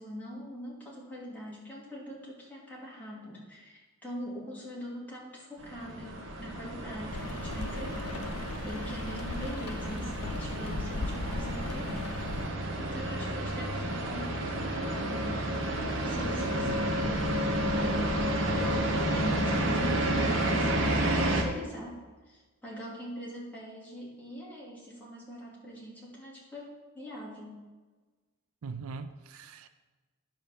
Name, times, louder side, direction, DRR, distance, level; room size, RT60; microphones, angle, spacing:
voice 1, 0.0-8.2 8.6-15.4 16.0-18.2 18.9-27.6, equal, 10° left, -7 dB, 2.5 m, -42 dB
sound 1, 5.6-21.4, right 1 dB, 60° right, 1.2 m, -31 dB
Rain, 7.1-12.5, left 3 dB, 90° left, 0.6 m, -38 dB
voice 2, 28.6-29.7, right 4 dB, 75° right, 10 dB, 0.5 m, -42 dB
10.0 x 4.2 x 6.9 m, 1.3 s
head